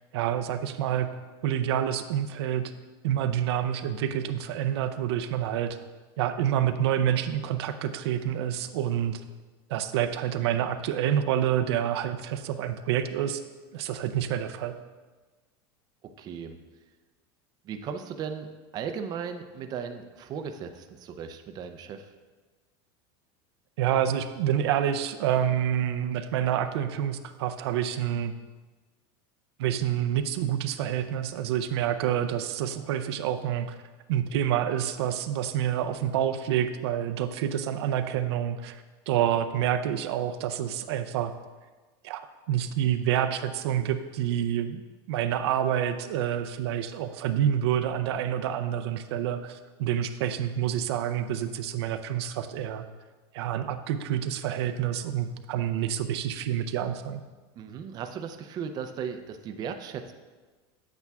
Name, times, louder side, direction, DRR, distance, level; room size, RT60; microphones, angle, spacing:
voice 1, 0.1-1.1 1.4-2.7 3.0-5.8 6.2-9.2 9.7-13.4 13.7-14.8 23.8-28.3 29.6-33.8 34.1-41.3 42.0-42.2 42.5-44.8 45.1-52.8 53.3-57.3, right 10 dB, 85° right, 8 dB, 0.5 m, -28 dB
voice 2, 16.2-16.6 17.6-18.5 18.7-22.1 57.6-60.1, right 7 dB, 30° right, 7 dB, 0.5 m, -36 dB
8.4 x 8.2 x 2.3 m, 1.3 s
supercardioid pair, 150°, 13 cm